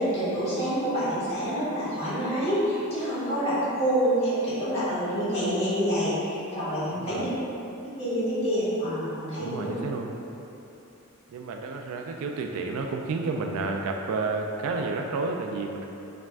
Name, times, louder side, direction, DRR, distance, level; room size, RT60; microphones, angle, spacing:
voice 1, 0.0-7.3 8.0-9.7, equal, 30° left, -12 dB, 1.5 m, -27 dB
voice 2, 9.4-10.1 11.3-15.9, right 3 dB, 80° right, 6 dB, 0.3 m, -31 dB
4.5 x 3.5 x 2.3 m, 2.9 s
head